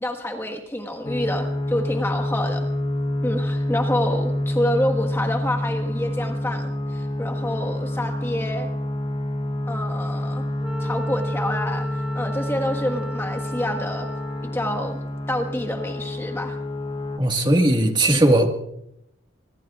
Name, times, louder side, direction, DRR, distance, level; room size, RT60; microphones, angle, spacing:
voice 1, 0.0-2.7 3.2-8.7 9.7-10.5 10.8-11.9 12.1-14.1 14.4-15.0 15.3-16.5, left 1 dB, 15° left, 3 dB, 1.5 m, -27 dB
sound 1, 1.0-17.2, left 1 dB, 30° left, 1.0 m, -27 dB
Wind instrument woodwind instrument, 10.6-14.8, equal, 5° right, 1.2 m, -37 dB
voice 2, 17.2-18.5, right 1 dB, 25° right, 3 dB, 1.7 m, -18 dB
25.0 x 22.5 x 2.4 m, 0.76 s
head